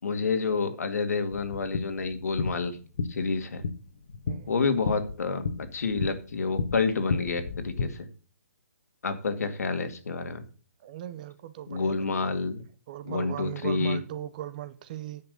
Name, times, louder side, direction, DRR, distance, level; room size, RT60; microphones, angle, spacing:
voice 1, 0.0-2.7 3.1-3.6 4.5-8.1 9.0-10.4 11.7-12.6 13.0-14.0, left 4 dB, 75° left, 2.1 m, -29 dB
sound 1, 1.3-7.8, left 4 dB, 60° left, 1.3 m, -34 dB
voice 2, 10.8-12.3 12.9-15.2, right 13 dB, 30° right, 0.7 m, -38 dB
10.5 x 6.0 x 6.8 m
hypercardioid pair, 165°, 8 cm